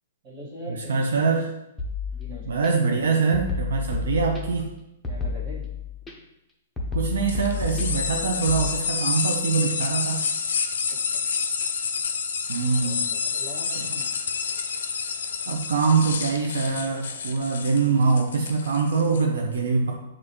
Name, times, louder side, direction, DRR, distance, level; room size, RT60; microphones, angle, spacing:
voice 1, 0.2-1.4 2.1-3.0 5.1-5.7 10.9-11.2 12.8-14.0, equal, 40° right, -5 dB, 1.5 m, -41 dB
voice 2, 0.9-1.5 2.5-4.7 6.9-10.3 12.5-13.1 13.8-13.9 15.5-19.9, right 4 dB, 80° right, 2 dB, 0.4 m, -24 dB
sound 1, 1.8-2.7 3.3-4.7 5.0-6.1 6.8-8.6, left 4 dB, 10° left, 0.7 m, -31 dB
sound 2, 7.3-19.2, left 6 dB, 75° left, 0.4 m, -29 dB
6.3 x 2.4 x 2.9 m, 0.88 s
hypercardioid pair, 130°, 0 cm